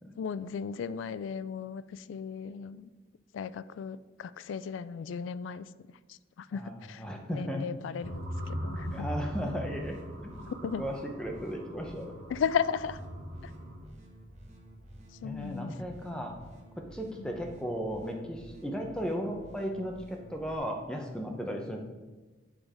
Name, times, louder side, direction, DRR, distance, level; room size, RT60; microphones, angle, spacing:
voice 1, 0.2-2.9 3.3-9.1 10.5-10.8 12.3-13.0 13.4-13.5 15.2-15.7 16.1-16.2 17.1-17.3, left 6 dB, 80° left, 16 dB, 0.3 m, -36 dB
voice 2, 6.5-7.7 8.9-10.0 10.2-10.5 10.8-12.1 15.2-16.3 16.9-21.8, equal, 5° left, 1 dB, 0.8 m, -36 dB
sound 1, 8.0-13.8, equal, 60° right, 1.6 m, -40 dB
sound 2, 8.4-20.6, right 1 dB, 35° right, 0.9 m, -52 dB
7.6 x 4.6 x 5.1 m, 1.2 s
head